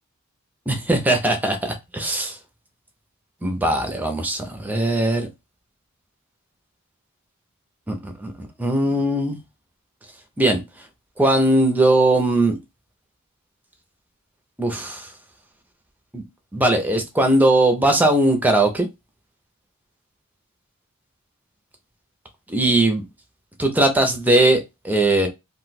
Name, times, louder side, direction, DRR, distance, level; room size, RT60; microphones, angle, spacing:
voice 1, 0.7-2.4 3.4-5.3 7.9-9.4 10.4-10.6 11.2-12.6 14.6-15.1 16.1-16.2 16.5-18.9 22.5-23.1 23.6-25.3, right 1 dB, 10° right, 0.5 m, -19 dB
2.5 x 2.1 x 4.0 m
head